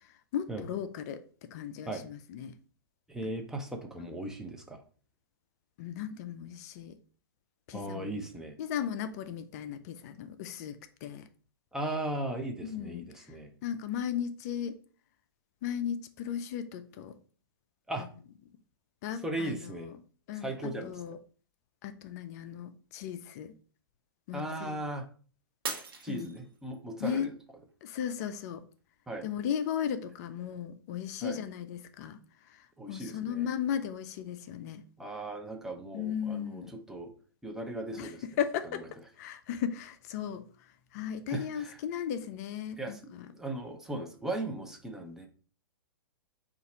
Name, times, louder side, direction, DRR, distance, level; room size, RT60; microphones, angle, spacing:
voice 1, 0.3-1.2 1.5-2.6 3.2-3.3 5.8-7.0 7.7-8.2 8.6-11.2 12.6-13.3 13.6-14.8 15.6-17.2 18.0-18.1 19.0-20.0 20.3-21.2 21.8-23.5 24.3-24.8 26.1-26.4 27.0-27.3 27.8-28.6 29.2-32.2 32.5-34.8 35.9-36.7 38.0-38.8 39.2-40.4 40.9-43.3, left 9 dB, 45° left, 0.4 m, -36 dB
voice 2, 3.1-4.8 7.7-8.6 11.7-13.5 17.9-18.1 19.2-19.9 20.4-20.9 24.3-25.1 26.0-27.3 29.1-29.3 31.2-31.4 32.8-33.5 35.0-37.1 37.4-38.2 41.3-41.8 42.8-43.0 43.3-45.3, right 1 dB, 5° right, 0.6 m, -37 dB
Shatter, 25.6-26.9 27.5-27.9 28.5-28.6, right 4 dB, 75° right, 1.0 m, -39 dB
4.1 x 2.5 x 4.1 m
hypercardioid pair, 120°, 12 cm